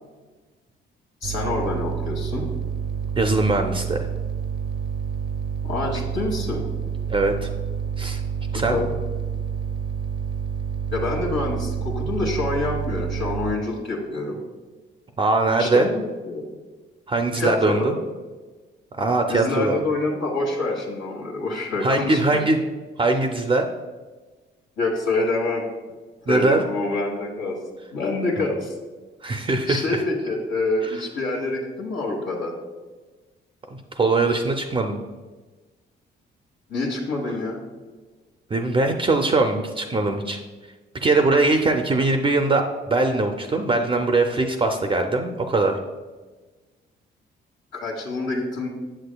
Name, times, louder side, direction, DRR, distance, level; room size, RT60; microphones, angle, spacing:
voice 1, 1.2-2.5 5.6-6.6 8.5-8.9 10.9-14.4 15.6-16.5 17.3-17.9 19.3-22.4 24.8-25.6 26.3-27.6 27.9-28.7 29.7-32.5 36.7-37.6 47.7-48.7, left 2 dB, 85° left, -3 dB, 1.3 m, -26 dB
sound 1, 1.2-13.6, right 8 dB, 70° right, 0.6 m, -28 dB
voice 2, 3.2-4.0 7.1-7.5 8.0-8.2 8.5-8.8 15.2-15.9 17.1-18.0 19.0-19.8 21.8-22.6 23.0-23.7 26.3-26.6 28.4-28.5 29.2-29.8 33.7-35.0 38.5-40.4 41.0-45.8, right 2 dB, 25° right, 4 dB, 0.5 m, -21 dB
7.4 x 6.7 x 2.2 m, 1.3 s
cardioid pair, 90°, 20 cm